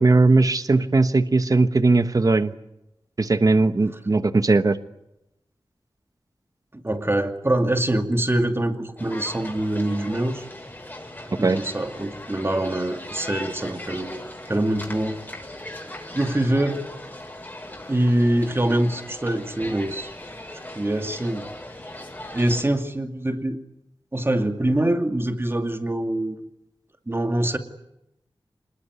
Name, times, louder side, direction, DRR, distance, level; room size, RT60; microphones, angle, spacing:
voice 1, 0.0-2.5 3.2-4.8 11.4-11.6, right 3 dB, 45° right, 11 dB, 1.1 m, -18 dB
voice 2, 6.7-10.5 11.3-15.2 16.1-16.8 17.9-20.1 20.5-21.5 22.3-23.6 24.1-26.4 27.1-27.6, right 1 dB, 25° right, 6 dB, 2.4 m, -24 dB
sound 1, 9.0-22.6, left 1 dB, 25° left, 6.5 m, -39 dB
26.0 x 21.0 x 9.7 m, 0.88 s
wide cardioid pair, 80°, 9 cm